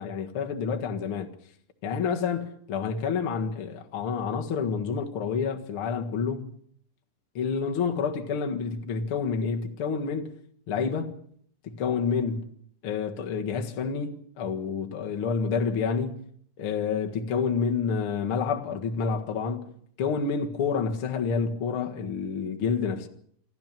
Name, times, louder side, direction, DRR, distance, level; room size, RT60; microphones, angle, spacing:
voice 1, 0.0-1.3 1.8-6.5 7.3-10.3 10.7-11.1 11.6-12.5 12.8-16.2 16.6-19.7 20.0-23.1, left 5 dB, 60° left, 1.4 m, -28 dB
28.0 x 12.5 x 7.5 m
omnidirectional pair, 5.0 m